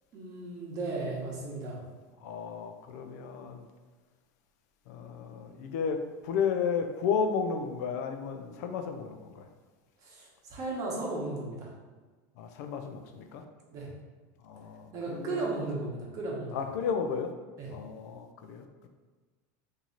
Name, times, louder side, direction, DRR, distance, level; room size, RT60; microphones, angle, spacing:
voice 1, 0.1-1.8 10.0-11.7 13.7-13.9 14.9-16.6 17.6-17.7, right 2 dB, 40° right, -3 dB, 1.0 m, -35 dB
voice 2, 2.2-3.6 4.9-9.5 12.4-13.4 14.4-15.6 16.5-17.3 17.7-18.9, left 6 dB, 75° left, 6 dB, 0.5 m, -33 dB
3.0 x 2.7 x 3.9 m, 1.3 s
supercardioid pair, 150°, 9 cm